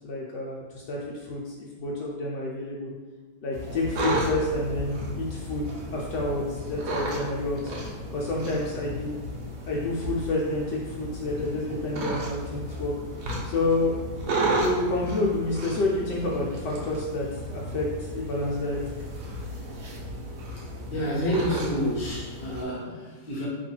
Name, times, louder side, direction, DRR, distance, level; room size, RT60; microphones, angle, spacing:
voice 1, 0.0-2.9 3.4-7.7 8.1-9.2 9.7-12.9 13.4-13.9 14.6-18.8, left 2 dB, 75° left, -3 dB, 1.1 m, -29 dB
sound 1, 3.5-22.6, right 1 dB, 70° right, 0.6 m, -33 dB
voice 2, 20.9-23.5, equal, 35° left, -5 dB, 1.0 m, -29 dB
2.9 x 2.5 x 4.3 m, 1.3 s
omnidirectional pair, 2.0 m